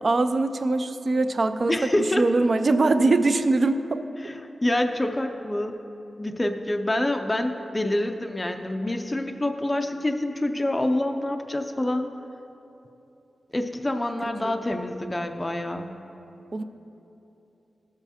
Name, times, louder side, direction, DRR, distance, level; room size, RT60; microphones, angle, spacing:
voice 1, 0.0-1.8 2.2-4.0 14.4-14.5 16.5-16.6, right 3 dB, 45° right, 10 dB, 0.4 m, -22 dB
voice 2, 1.7-2.2 4.2-5.8 6.2-12.1 13.5-15.9, left 1 dB, 20° left, 5 dB, 0.4 m, -26 dB
15.5 x 6.9 x 2.8 m, 2.9 s
wide cardioid pair, 105°, 0 cm